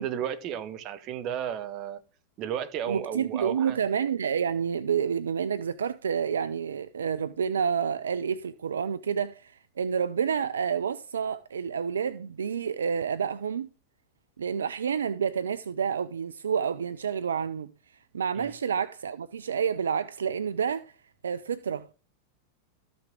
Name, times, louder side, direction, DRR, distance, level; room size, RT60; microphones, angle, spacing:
voice 1, 0.0-2.0 2.4-3.8 18.3-18.5, right 9 dB, 40° right, 0.9 m, -33 dB
voice 2, 2.9-13.7 14.4-17.7 18.1-20.9 21.2-21.9, right 7 dB, 70° right, 0.3 m, -29 dB
13.0 x 6.0 x 3.6 m
figure-of-eight pair, 90°, 0 cm